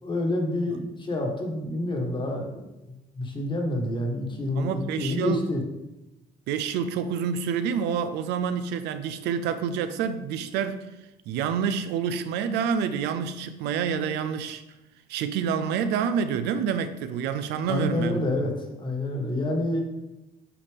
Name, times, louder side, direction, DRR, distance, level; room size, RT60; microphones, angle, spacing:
voice 1, 0.0-2.7 3.1-5.6 17.7-19.8, left 1 dB, 30° left, 1.4 m, -28 dB
voice 2, 4.6-5.5 6.5-10.9 11.3-14.6 15.1-18.2, right 7 dB, 85° right, 0.5 m, -28 dB
8.3 x 4.1 x 3.6 m
cardioid pair, 110°, 17 cm